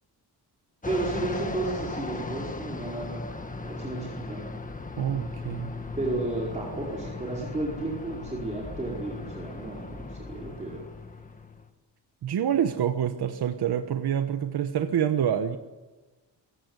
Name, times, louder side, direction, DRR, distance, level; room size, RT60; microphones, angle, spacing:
Fixed-wing aircraft airplane, 0.8-11.7, left 3 dB, 20° left, 1.7 m, -38 dB
voice 1, 0.9-3.3 3.6-4.4 6.0-10.9, right 2 dB, 15° right, -4 dB, 4.8 m, -32 dB
voice 2, 5.0-5.7 12.2-15.6, right 9 dB, 65° right, 7 dB, 1.2 m, -27 dB
25.0 x 16.0 x 9.7 m, 1.2 s
wide cardioid pair, 150°, 42 cm